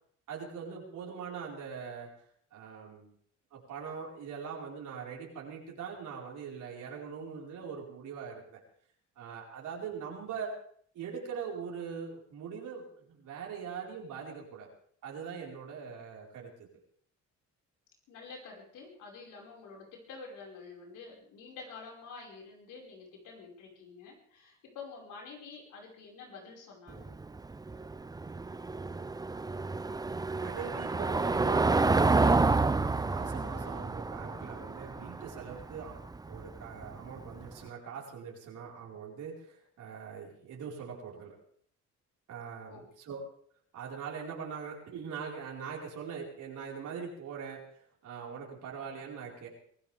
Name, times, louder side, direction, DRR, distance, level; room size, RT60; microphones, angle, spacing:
voice 1, 0.3-2.1 2.5-3.1 3.5-8.6 9.2-10.5 10.9-14.7 15.0-16.7 30.4-32.4 33.0-41.3 42.3-43.2 43.7-49.5, right 6 dB, 80° right, -2 dB, 4.9 m, -42 dB
voice 2, 18.1-27.1 42.6-42.8, left 4 dB, 90° left, -1 dB, 5.5 m, -48 dB
Car passing by / Engine, 26.9-37.5, right 3 dB, 15° right, 0.5 m, -29 dB
23.5 x 16.0 x 3.5 m, 0.62 s
cardioid pair, 90°, 30 cm